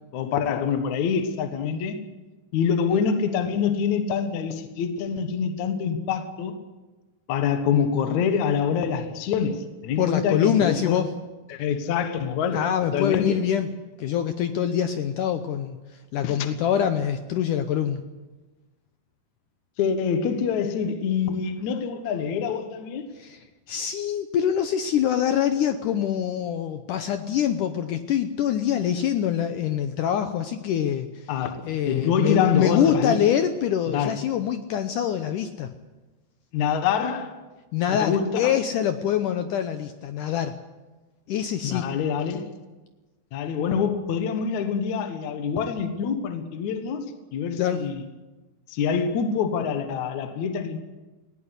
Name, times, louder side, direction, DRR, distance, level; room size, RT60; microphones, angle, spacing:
voice 1, 0.1-2.0 2.5-6.6 7.3-11.0 11.5-12.6 12.9-13.4 16.2-16.4 19.8-23.1 31.3-31.6 31.9-33.2 33.9-34.1 36.5-37.3 37.9-38.6 41.6-42.5 43.3-47.1 47.3-48.0 48.7-50.8, left 7 dB, 60° left, 8 dB, 2.3 m, -25 dB
voice 2, 10.0-11.1 12.5-13.7 14.0-15.8 16.1-18.0 23.2-23.4 23.7-31.3 31.6-35.7 37.7-40.6 41.3-41.9 47.6-47.9, left 9 dB, 80° left, 9 dB, 1.9 m, -24 dB
19.5 x 17.0 x 8.2 m, 1.2 s
omnidirectional pair, 4.6 m